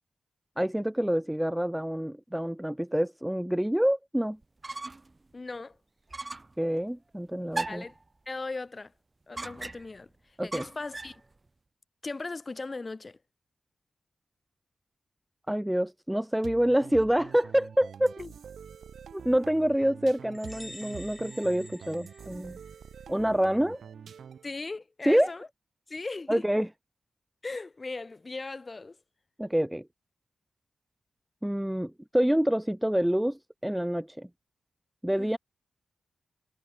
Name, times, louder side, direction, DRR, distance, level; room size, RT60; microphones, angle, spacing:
voice 1, 0.6-4.4 6.6-7.8 10.4-10.6 15.5-18.2 19.1-22.6 23.1-23.8 25.1-25.3 26.3-26.7 29.4-29.9 31.4-34.3 35.0-35.4, equal, 5° right, 0.4 m, -27 dB
sound 1, 4.4-5.2 5.5-5.6 6.1-6.6 7.5-8.0 9.4-10.0 10.5-11.2, right 2 dB, 25° right, 1.0 m, -37 dB
voice 2, 5.3-5.8 7.7-7.9 8.3-8.9 9.3-10.1 10.4-11.2 12.0-13.2 18.2-18.3 24.4-25.5 25.9-26.4 27.4-29.0 35.2-35.4, left 3 dB, 30° left, 2.5 m, -38 dB
sound 2, 16.4-24.6, right 7 dB, 80° right, 1.5 m, -46 dB
sound 3, 20.3-22.9, left 1 dB, 10° left, 6.1 m, -49 dB
wide cardioid pair, 120°, 0 cm